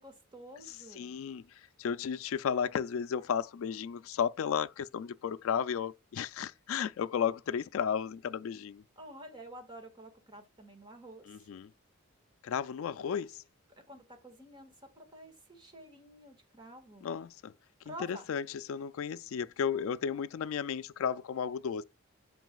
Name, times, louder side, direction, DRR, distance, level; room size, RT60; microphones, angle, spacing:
voice 1, 0.0-1.1 9.0-11.4 13.9-17.1 17.9-18.3, right 1 dB, 20° right, 1.7 m, -49 dB
voice 2, 1.0-1.4 1.8-8.8 11.3-11.7 12.4-13.4 17.0-17.5 17.9-21.8, left 7 dB, 70° left, 0.3 m, -34 dB
9.1 x 5.4 x 2.3 m
head